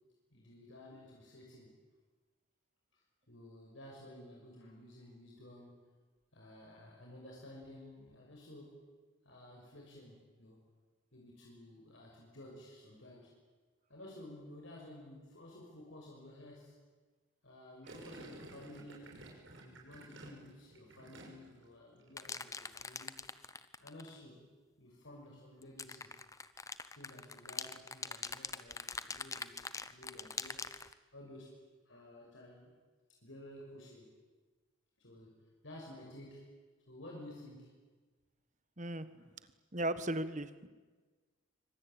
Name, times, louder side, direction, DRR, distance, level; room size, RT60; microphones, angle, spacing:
voice 1, 0.3-1.7 2.9-3.0 3.3-5.8 6.3-8.8 9.2-10.6 11.1-13.3 13.9-16.7 17.4-19.2 19.6-23.2 23.8-24.4 24.8-26.1 26.9-30.6 31.1-31.5 31.8-32.7 33.2-34.1 35.0-35.4 35.6-36.4 36.9-37.7 39.2-39.3, left 1 dB, 70° left, -2 dB, 6.1 m, -53 dB
Gurgling, 17.9-21.6 21.9-22.3, right 2 dB, 70° right, 6.2 m, -53 dB
sound 1, 22.2-24.2 25.6-30.9, left 4 dB, 15° left, 0.9 m, -43 dB
voice 2, 38.8-39.3 39.7-40.7, right 1 dB, 35° right, 12 dB, 1.4 m, -37 dB
26.0 x 25.0 x 9.0 m, 1.4 s
head